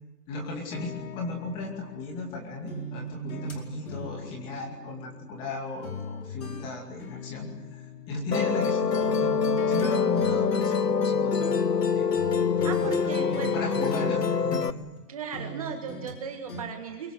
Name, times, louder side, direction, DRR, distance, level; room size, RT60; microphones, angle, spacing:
voice 1, 0.3-7.8 8.1-11.6 11.9-12.1 12.5-12.7 13.1-14.7, left 3 dB, 10° left, 1 dB, 2.4 m, -35 dB
sound 1, 0.7-2.3 2.7-5.5 5.8-8.7 9.0-9.9 10.2-11.8 12.1-15.0 15.3-16.2 16.5-16.6, left 1 dB, 60° left, 5.1 m, -40 dB
Musical instrument, 8.3-14.7, left 6 dB, 85° left, 1.4 m, -25 dB
voice 2, 12.6-13.6 15.1-17.1, right 6 dB, 20° right, 4 dB, 1.6 m, -36 dB
23.5 x 23.0 x 9.3 m, 1.1 s
hypercardioid pair, 160°, 47 cm